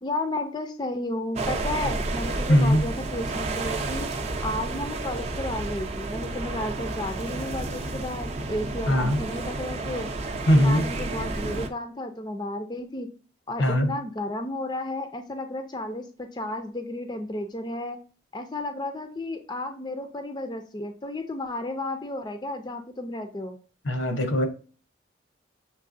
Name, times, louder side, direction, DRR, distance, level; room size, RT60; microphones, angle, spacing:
voice 1, 0.0-4.1 4.4-10.1 10.5-13.1 13.5-18.0 18.3-23.6, left 1 dB, 20° left, 0.4 m, -33 dB
sound 1, 1.4-11.7, right 2 dB, 35° right, 0.5 m, -31 dB
voice 2, 2.5-2.8 8.9-9.2 10.5-10.9 13.6-13.9 23.8-24.5, equal, 85° left, 1.0 m, -20 dB
6.5 x 3.1 x 2.6 m
head